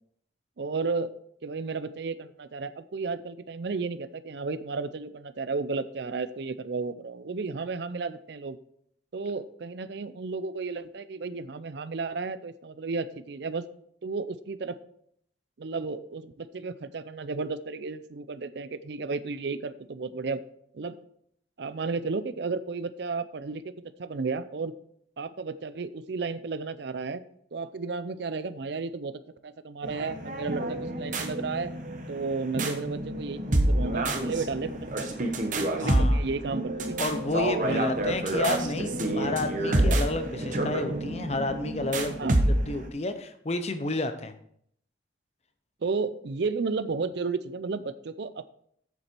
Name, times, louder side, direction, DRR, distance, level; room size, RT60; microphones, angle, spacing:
voice 1, 0.6-1.1 1.4-8.6 9.1-13.6 14.0-14.8 15.6-20.4 20.7-21.0 21.6-23.6 24.0-24.7 25.2-27.2 27.5-31.7 32.1-35.2 35.5-37.0 37.6-37.8 42.2-42.4 45.8-48.5, right 4 dB, 65° right, 14 dB, 0.5 m, -33 dB
sound 1, 29.8-42.9, right 1 dB, 40° right, 1.1 m, -28 dB
voice 2, 35.8-36.2 37.0-44.3, left 2 dB, 35° left, 9 dB, 0.7 m, -31 dB
8.2 x 7.2 x 4.5 m, 0.68 s
head